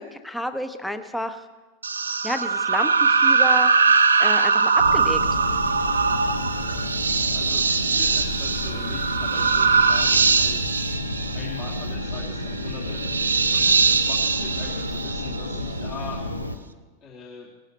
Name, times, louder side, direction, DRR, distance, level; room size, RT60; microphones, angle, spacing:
voice 1, 0.0-1.5 2.2-3.9 4.2-5.2, equal, 5° left, 9 dB, 0.8 m, -30 dB
sound 1, 1.8-15.7, right 4 dB, 75° right, 0.6 m, -21 dB
sound 2, 4.8-16.6, left 1 dB, 85° left, 0.9 m, -31 dB
sound 3, 4.8-11.0, left 3 dB, 55° left, 1.8 m, -43 dB
voice 2, 7.3-10.7 11.3-16.2 17.0-17.5, left 5 dB, 35° left, -5 dB, 2.3 m, -42 dB
19.5 x 11.5 x 3.2 m, 1.2 s
figure-of-eight pair, 90°, 0 cm